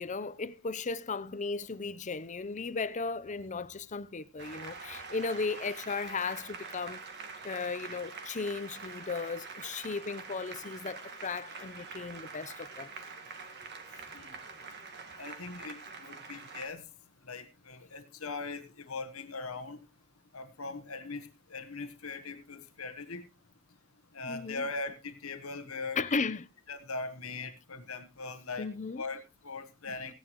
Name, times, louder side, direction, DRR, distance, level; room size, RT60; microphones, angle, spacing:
voice 1, 0.0-7.0 7.4-12.9 24.2-24.6 26.0-26.5 28.6-29.0, left 4 dB, 35° left, 0.7 m, -36 dB
Applause, 4.4-16.7, right 4 dB, 50° right, 2.2 m, -45 dB
voice 2, 15.2-16.8 17.3-19.8 20.3-23.2 24.1-26.2 26.7-28.7 29.0-30.1, left 3 dB, 80° left, 1.4 m, -40 dB
16.0 x 11.0 x 3.0 m
head